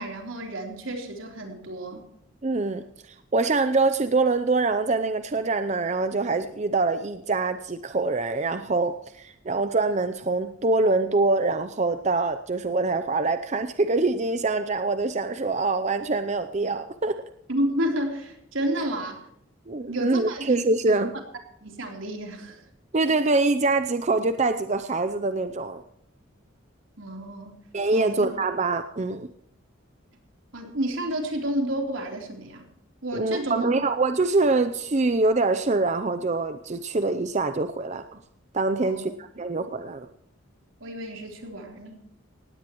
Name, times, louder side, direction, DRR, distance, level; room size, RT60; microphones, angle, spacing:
voice 1, 0.0-2.0 17.5-19.2 19.9-20.5 20.9-21.0 21.6-22.6 27.0-27.5 27.9-28.3 30.5-32.7 33.0-33.7 38.8-39.1 40.8-42.0, right 1 dB, 75° right, 1 dB, 3.5 m, -30 dB
voice 2, 2.4-17.2 19.7-21.1 22.9-25.8 27.7-29.3 33.1-38.2 38.5-40.1, right 3 dB, 35° right, 9 dB, 0.6 m, -24 dB
18.5 x 16.0 x 3.0 m, 0.75 s
head